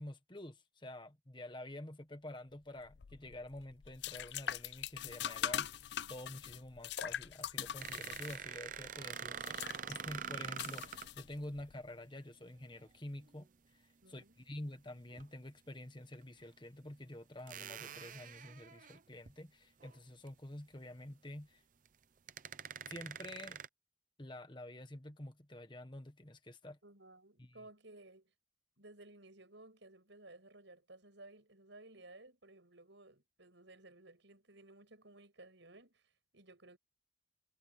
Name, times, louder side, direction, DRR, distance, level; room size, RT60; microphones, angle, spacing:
voice 1, 0.0-9.6 9.9-21.6 22.9-23.6 24.2-26.8 27.4-27.6, left 1 dB, 25° left, 1.6 m, -48 dB
sound 1, 2.8-11.7, left 10 dB, 60° left, 0.4 m, -43 dB
sound 2, 7.8-11.1 13.2-13.4 15.1-15.2 16.1-16.2 17.5-19.3 19.8-20.0 20.3-20.4 21.9-22.0 22.3-23.7, right 7 dB, 40° right, 0.6 m, -45 dB
voice 2, 14.0-14.4 26.8-28.3 28.8-36.8, right 2 dB, 70° right, 6.5 m, -57 dB
head